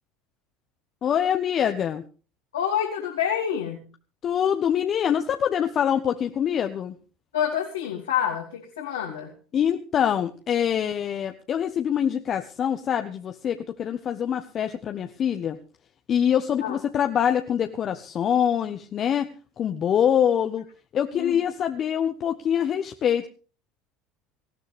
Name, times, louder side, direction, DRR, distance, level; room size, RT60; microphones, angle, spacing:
voice 1, 1.0-2.0 4.2-6.9 9.5-15.6 16.1-19.3 19.6-20.7 20.9-23.3, left 9 dB, 45° left, 6 dB, 1.2 m, -24 dB
voice 2, 2.5-3.8 7.3-9.3 16.6-16.8 21.1-21.4, left 9 dB, 85° left, -1 dB, 2.9 m, -27 dB
19.0 x 14.5 x 3.5 m, 0.37 s
hypercardioid pair, 75°, 0 cm